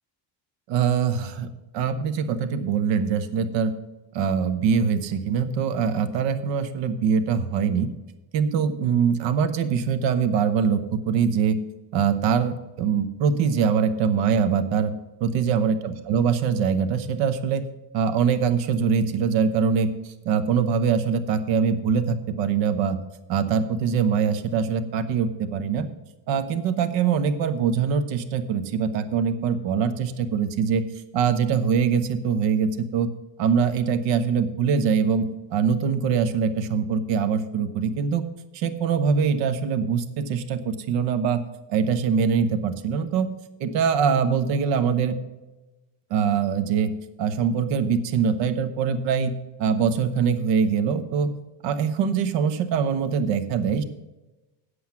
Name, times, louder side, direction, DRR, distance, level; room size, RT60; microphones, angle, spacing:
voice 1, 0.7-1.5 1.7-3.7 4.1-7.9 8.3-11.6 11.9-14.9 15.2-17.6 17.9-23.0 23.3-25.9 26.3-30.8 31.1-33.1 33.4-38.2 38.5-41.4 41.7-43.3 43.6-45.2 46.1-46.9 47.2-49.3 49.6-51.3 51.6-53.8, right 6 dB, 80° right, 11 dB, 1.1 m, -23 dB
8.2 x 7.9 x 5.9 m, 1.1 s
cardioid pair, 160°, 44 cm